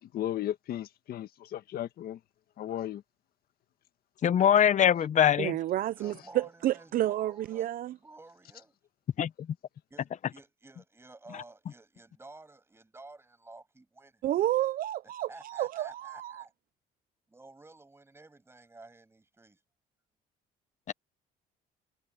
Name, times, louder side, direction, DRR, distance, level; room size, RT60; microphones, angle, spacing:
voice 1, 0.0-2.2 2.6-3.0, left 11 dB, 65° left, 1.6 m, -35 dB
voice 2, 4.2-5.6 9.2-9.3 20.9-21.0, left 9 dB, 45° left, 0.8 m, -22 dB
voice 3, 5.4-8.0 14.2-16.4, right 13 dB, 55° right, 0.5 m, -30 dB
voice 4, 6.0-7.7 8.0-8.7 9.9-14.2 15.3-16.5 17.3-19.6, right 2 dB, 15° right, 8.0 m, -52 dB
cardioid pair, 110°, 17 cm